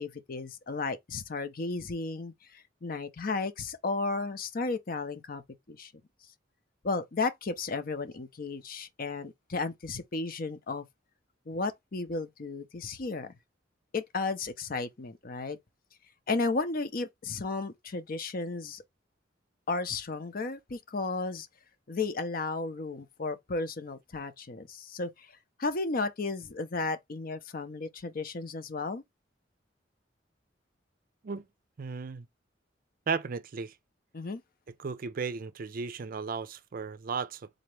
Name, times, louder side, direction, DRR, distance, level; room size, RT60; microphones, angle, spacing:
voice 1, 0.0-5.4 5.7-5.9 6.8-10.8 11.5-13.3 13.9-15.6 16.3-18.8 19.7-21.5 21.9-25.3 25.6-29.0 34.1-34.4, left 3 dB, 50° left, 0.7 m, -34 dB
voice 2, 31.8-32.3 33.1-33.8 34.8-37.5, right 5 dB, 50° right, 0.4 m, -35 dB
3.9 x 2.8 x 3.2 m
head